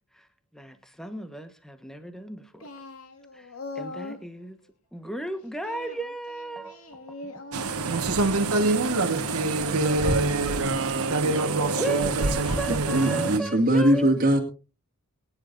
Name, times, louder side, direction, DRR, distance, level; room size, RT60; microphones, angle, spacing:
voice 1, 0.5-2.7 3.3-4.6 4.9-9.7 11.8-14.1, right 2 dB, ahead, 1.3 m, -36 dB
Singing, 2.6-4.3 5.6-8.2 8.6-10.4 11.2-11.5 12.4-13.1, left 2 dB, 80° left, 2.1 m, -42 dB
sound 1, 7.5-13.4, right 3 dB, 90° right, 1.4 m, -25 dB
voice 2, 9.8-12.4, right 3 dB, 60° right, 1.3 m, -32 dB
voice 3, 12.9-14.4, right 1 dB, 40° right, 2.1 m, -21 dB
23.0 x 10.0 x 2.6 m
head